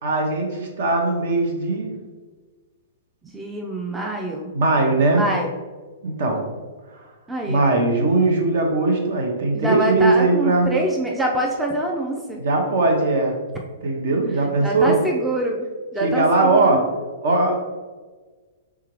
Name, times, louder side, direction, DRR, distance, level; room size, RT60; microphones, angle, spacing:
voice 1, 0.0-1.9 4.5-5.2 6.0-6.4 6.9-7.1 7.5-10.7 12.4-13.3 13.8-14.9 16.0-16.8 17.2-17.6, right 2 dB, 50° right, 2 dB, 0.9 m, -20 dB
voice 2, 3.3-4.5 5.1-5.5 7.3-7.8 9.5-12.4 14.6-15.7 15.9-16.9, right 1 dB, 10° right, 0 dB, 0.5 m, -25 dB
4.7 x 3.5 x 3.0 m, 1.4 s
figure-of-eight pair, 110°, 0 cm